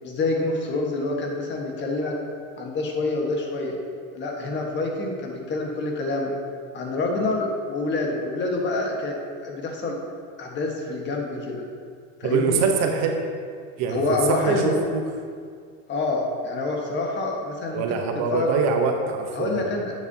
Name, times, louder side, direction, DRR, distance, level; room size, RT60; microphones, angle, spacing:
voice 1, 0.0-2.2 2.6-3.8 4.1-6.3 6.7-10.0 10.4-11.6 12.2-12.6 13.9-14.8 15.9-18.0 18.3-18.5 19.3-19.9, left 2 dB, 30° left, 0 dB, 1.4 m, -27 dB
voice 2, 12.2-13.2 13.8-15.0 17.7-19.6, right 5 dB, 45° right, 3 dB, 0.9 m, -24 dB
10.5 x 8.4 x 2.8 m, 2.1 s
supercardioid pair, 135°, 37 cm